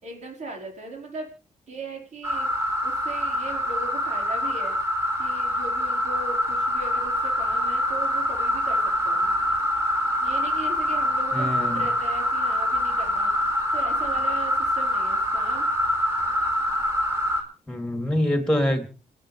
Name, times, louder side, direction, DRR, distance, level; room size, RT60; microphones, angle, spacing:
voice 1, 0.0-1.3 1.7-2.5 2.8-4.8 5.2-8.8 9.0-9.3 10.2-13.3 13.7-15.7, right 2 dB, 65° right, 1 dB, 5.0 m, -38 dB
sound 1, 2.2-17.4, equal, 20° right, 4.6 m, -25 dB
voice 2, 11.3-11.9 17.7-18.9, left 1 dB, 5° left, 6 dB, 3.4 m, -25 dB
29.0 x 10.0 x 3.5 m, 0.34 s
cardioid pair, 80°, 13 cm